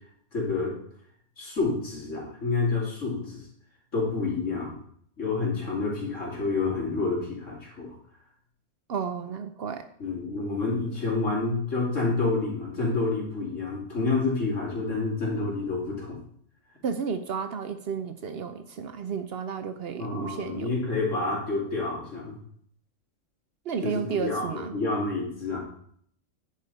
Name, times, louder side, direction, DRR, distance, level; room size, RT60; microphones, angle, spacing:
voice 1, 0.3-0.8 1.4-3.5 3.9-4.7 5.2-7.9 10.0-16.2 20.0-22.4 23.8-25.6, left 3 dB, 75° left, -4 dB, 3.2 m, -28 dB
voice 2, 8.9-9.9 16.8-20.7 23.7-24.7, right 6 dB, 60° right, 8 dB, 0.8 m, -32 dB
10.5 x 5.0 x 4.2 m, 0.63 s
omnidirectional pair, 1.3 m